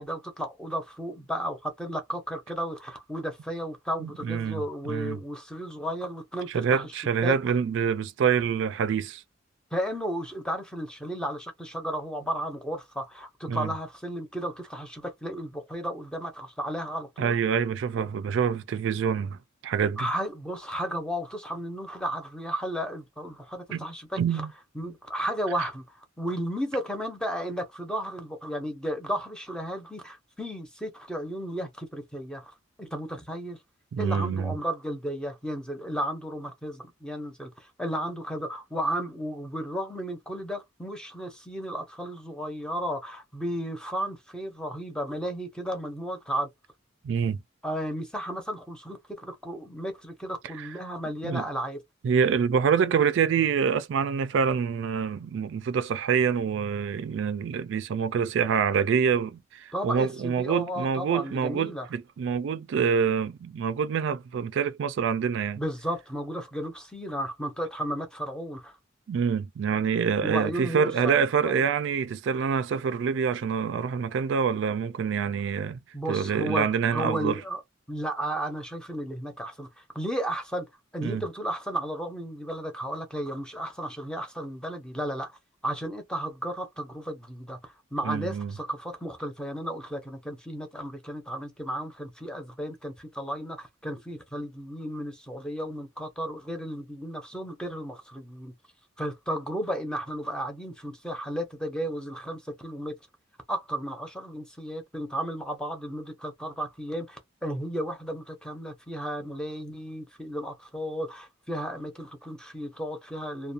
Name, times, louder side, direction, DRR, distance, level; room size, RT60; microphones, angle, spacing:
voice 1, 0.0-6.9 7.2-7.3 9.7-17.4 20.0-24.5 24.7-32.5 32.8-33.6 34.0-46.5 47.6-51.8 59.7-61.9 65.5-68.8 70.2-71.7 75.9-77.6 77.9-80.7 80.9-85.4 85.6-98.5 99.0-103.0 103.5-113.5, equal, 5° left, 0.7 m, -34 dB
voice 2, 4.0-5.2 6.5-9.2 13.5-13.7 17.2-19.4 19.6-20.1 23.7-23.9 24.2-24.5 33.9-34.5 47.0-47.4 50.6-50.7 51.2-51.4 52.0-65.6 69.1-75.8 76.1-77.4 81.0-81.2 88.0-88.5, right 6 dB, 70° right, 0.3 m, -26 dB
2.4 x 2.1 x 2.6 m
head